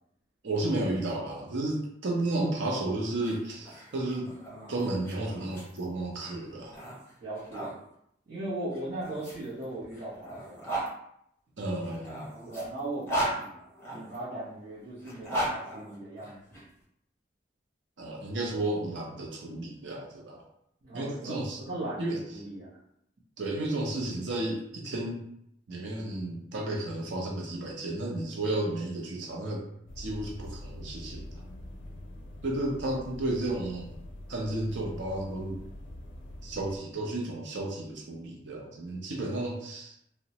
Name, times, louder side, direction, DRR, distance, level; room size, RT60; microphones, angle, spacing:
voice 1, 0.4-4.3 4.7-6.8 11.6-12.3 18.0-20.5 20.9-21.6 22.0-22.2 23.4-25.2 25.7-29.6 30.0-31.4 32.4-33.9 34.3-35.6 36.4-40.0, right 2 dB, 85° right, -1 dB, 0.6 m, -32 dB
sound 1, 3.1-7.7 8.7-10.9 11.8-14.2 15.0-16.6, right 1 dB, 15° left, 0.7 m, -37 dB
voice 2, 7.2-7.8 8.3-10.6 12.5-16.6 20.8-22.7, right 2 dB, 45° right, -12 dB, 0.8 m, -38 dB
sound 2, 29.9-36.8, left 1 dB, 85° left, 0.4 m, -44 dB
2.9 x 2.1 x 2.8 m, 0.75 s
head